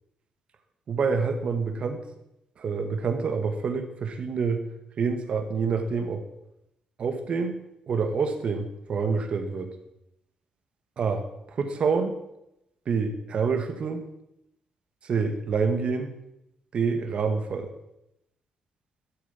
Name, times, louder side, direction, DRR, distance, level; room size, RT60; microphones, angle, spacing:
voice 1, 0.9-2.1 2.6-4.6 5.0-6.2 7.0-7.6 7.9-9.7 11.0-12.2 12.9-14.1 15.0-16.1 16.7-17.7, right 5 dB, 60° right, 6 dB, 2.2 m, -27 dB
12.5 x 12.0 x 6.0 m, 0.84 s
supercardioid pair, 65°, 2 cm